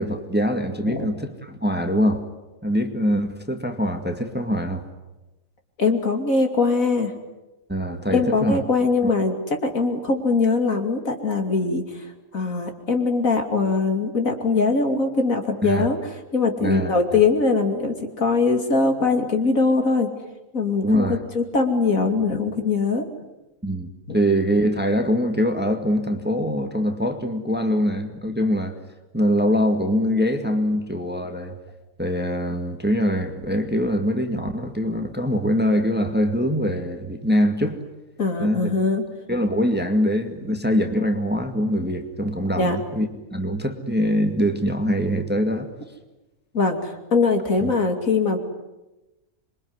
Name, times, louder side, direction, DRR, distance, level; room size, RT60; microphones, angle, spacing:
voice 1, 0.0-2.2 2.6-4.9 7.7-8.6 9.0-9.1 15.6-15.9 16.6-16.9 20.8-21.2 23.6-28.8 29.1-31.5 32.0-37.8 38.4-38.7 39.3-45.7 47.6-47.7, equal, 5° right, 6 dB, 2.0 m, -23 dB
voice 2, 5.8-7.1 8.1-12.1 12.3-16.0 16.3-20.1 20.5-23.0 24.1-24.2 38.2-39.0 42.6-42.8 46.5-48.4, left 4 dB, 60° left, 5 dB, 3.2 m, -22 dB
27.0 x 23.0 x 9.6 m, 1.0 s
omnidirectional pair, 1.6 m